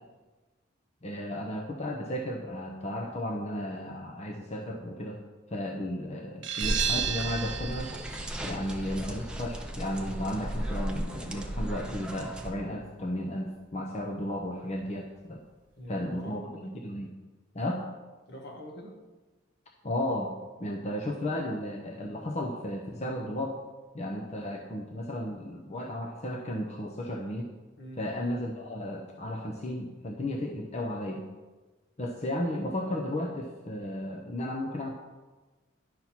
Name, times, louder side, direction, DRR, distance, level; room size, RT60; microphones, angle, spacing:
voice 1, 1.0-5.2 5.5-7.9 8.4-15.4 15.9-16.4 16.7-17.1 17.5-17.9 19.8-20.3 20.6-23.6 23.9-27.5 28.0-31.2 32.0-34.9, left 1 dB, 35° left, 1 dB, 0.7 m, -34 dB
sound 1, 6.4-11.8, right 8 dB, 85° right, 1.2 m, -35 dB
sound 2, 6.6-12.5, right 1 dB, 5° right, 0.7 m, -35 dB
voice 2, 15.8-16.8 18.3-19.0 27.8-28.1, equal, 65° left, 2 dB, 1.5 m, -44 dB
10.5 x 5.8 x 4.3 m, 1.2 s
head